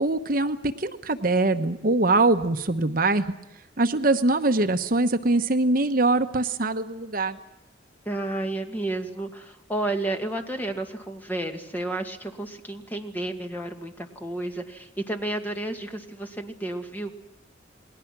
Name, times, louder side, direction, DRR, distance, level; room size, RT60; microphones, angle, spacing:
voice 1, 0.0-3.3 3.8-7.4, right 2 dB, 50° right, 8 dB, 1.0 m, -23 dB
voice 2, 8.1-17.1, right 2 dB, 10° left, 4 dB, 2.1 m, -31 dB
29.0 x 20.5 x 6.0 m, 0.89 s
head